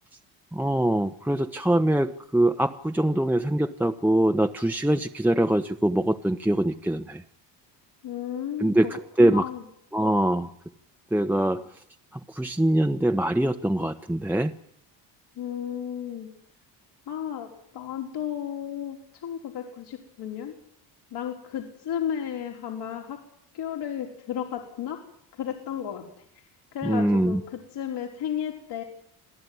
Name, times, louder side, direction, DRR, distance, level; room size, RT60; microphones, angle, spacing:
voice 1, 0.5-7.2 8.6-9.5 9.9-10.5 11.1-11.6 12.1-14.5 26.8-27.4, right 1 dB, 5° right, 5 dB, 1.3 m, -23 dB
voice 2, 8.0-8.9 9.2-9.6 15.4-16.3 17.1-19.0 19.2-20.5 21.1-23.2 23.5-25.0 25.4-26.0 26.7-28.8, left 9 dB, 65° left, 2 dB, 4.8 m, -33 dB
27.5 x 17.5 x 9.7 m, 0.72 s
supercardioid pair, 80°, 43 cm